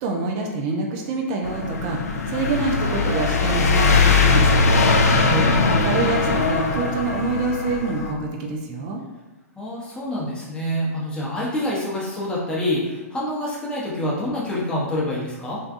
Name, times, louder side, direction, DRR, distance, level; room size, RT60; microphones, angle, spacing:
voice 1, 0.0-4.6 5.8-9.0, right 3 dB, 40° right, 1 dB, 0.4 m, -26 dB
sound 1, 1.4-8.1, left 3 dB, 80° left, 0.4 m, -20 dB
voice 2, 5.1-5.6 9.6-15.6, left 1 dB, 10° left, -6 dB, 0.7 m, -26 dB
2.6 x 2.2 x 2.5 m, 1.1 s
hypercardioid pair, 120°, 8 cm